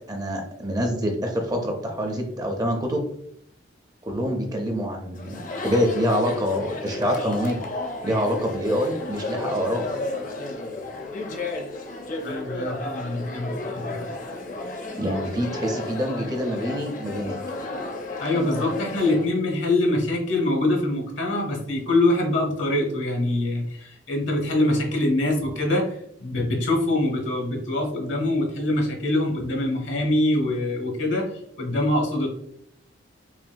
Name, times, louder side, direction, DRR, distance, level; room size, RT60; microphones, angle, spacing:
voice 1, 0.1-3.0 4.0-7.6 8.0-9.9 15.0-17.3, equal, 20° right, 3 dB, 0.5 m, -26 dB
Chatter, 5.1-19.3, left 2 dB, 40° left, 0.5 m, -33 dB
voice 2, 12.2-14.0 18.2-32.3, left 1 dB, 65° left, 0 dB, 1.1 m, -24 dB
5.8 x 2.6 x 2.2 m, 0.71 s
head